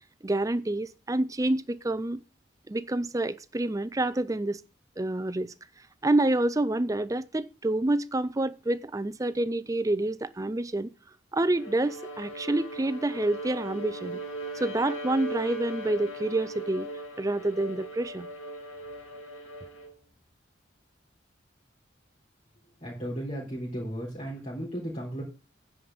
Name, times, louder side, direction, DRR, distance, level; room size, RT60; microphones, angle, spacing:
voice 1, 0.2-2.2 2.7-4.6 5.0-5.5 6.0-10.9 11.3-14.2 14.5-16.9 17.2-18.3, right 2 dB, 15° right, 0.4 m, -28 dB
Bowed string instrument, 11.6-20.0, right 1 dB, 85° left, 2.6 m, -39 dB
voice 2, 22.8-25.2, equal, 35° left, 3.7 m, -35 dB
9.9 x 5.1 x 7.7 m
head